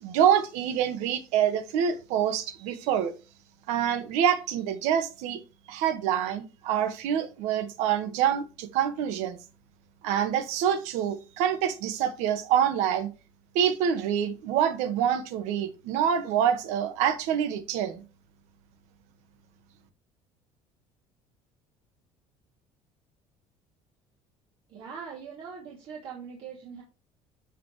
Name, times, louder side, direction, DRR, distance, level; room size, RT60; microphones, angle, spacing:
voice 1, 0.0-3.1 3.7-5.4 5.7-9.4 10.0-13.1 13.5-18.0, right 9 dB, 80° right, 1.6 m, -26 dB
voice 2, 24.7-26.8, right 6 dB, 55° right, 2.6 m, -41 dB
12.5 x 5.3 x 3.2 m
cardioid pair, 170°, 12 cm